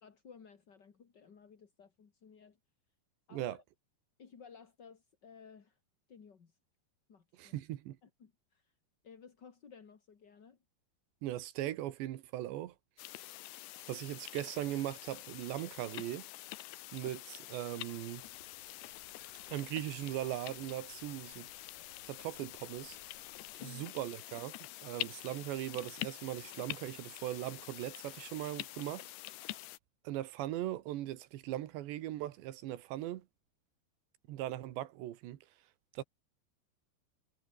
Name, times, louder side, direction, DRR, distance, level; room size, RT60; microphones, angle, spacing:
voice 1, 0.0-2.6 3.3-3.6 4.2-5.8 6.1-6.5 7.1-7.5 8.0-8.7 9.0-10.6 23.6-23.9, left 6 dB, 40° left, 1.6 m, -56 dB
voice 2, 7.3-8.0 11.2-12.8 13.9-16.3 16.9-18.2 19.5-21.5 22.1-23.0 23.6-24.6 24.8-29.1 30.1-33.3 34.3-35.4 35.9-36.0, right 14 dB, 85° right, 3.7 m, -39 dB
sound 1, 13.0-29.8, left 17 dB, 80° left, 3.0 m, -46 dB
sound 2, 17.8-23.6, right 6 dB, 55° right, 5.6 m, -66 dB
omnidirectional pair, 4.9 m